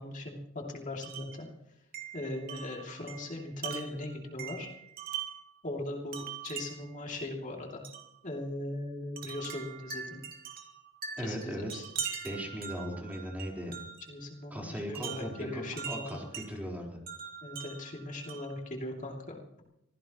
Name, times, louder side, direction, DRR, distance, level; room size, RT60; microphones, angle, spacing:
voice 1, 0.0-1.5 2.1-4.7 5.6-7.8 8.2-10.2 11.2-11.8 14.1-16.2 17.4-19.6, left 1 dB, 35° left, 0 dB, 2.8 m, -39 dB
Wind chime, 1.0-1.4 1.9-5.5 6.1-7.0 7.8-8.1 9.2-14.1 15.0-16.5 17.1-18.6, right 8 dB, 45° right, 2.9 m, -42 dB
voice 2, 11.2-11.9 12.2-13.8 14.5-17.0, equal, 10° right, -2 dB, 4.2 m, -38 dB
24.5 x 16.5 x 3.1 m, 0.84 s
head